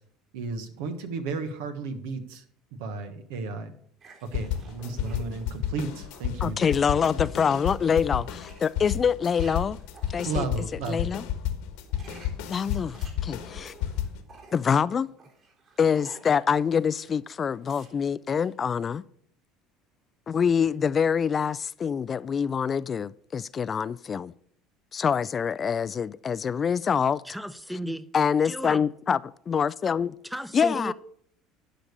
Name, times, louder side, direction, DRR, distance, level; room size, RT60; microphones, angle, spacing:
voice 1, 0.3-2.4 2.8-3.7 4.2-6.5 10.2-11.1, right 4 dB, 75° right, 1.3 m, -33 dB
sound 1, 4.0-6.3 6.7-11.1 11.7-17.2 17.5-18.5, right 4 dB, 50° right, 4.3 m, -53 dB
sound 2, 4.3-14.2, left 10 dB, 75° left, 1.4 m, -32 dB
voice 2, 6.4-9.8 10.1-10.5 10.9-11.2 12.5-13.0 13.2-13.7 14.5-15.1 15.8-19.0 20.3-24.3 24.9-27.2 28.1-29.2 29.5-30.2 30.5-30.9, left 7 dB, 35° left, 0.3 m, -25 dB
voice 3, 27.2-28.1 28.4-28.8 30.2-30.9, equal, ahead, 0.8 m, -34 dB
11.5 x 5.1 x 6.7 m
hypercardioid pair, 75°, 0 cm